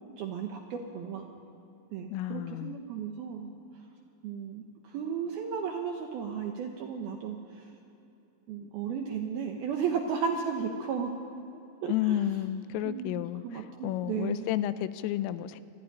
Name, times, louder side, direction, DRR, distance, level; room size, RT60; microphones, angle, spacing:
voice 1, 0.2-1.3 1.9-3.5 4.2-7.7 8.5-11.1 11.8-12.2 12.8-14.5, right 6 dB, 75° right, 3 dB, 2.3 m, -34 dB
voice 2, 2.1-2.8 11.9-15.6, left 12 dB, 85° left, 13 dB, 3.3 m, -31 dB
26.0 x 14.0 x 9.8 m, 2.8 s
omnidirectional pair, 5.8 m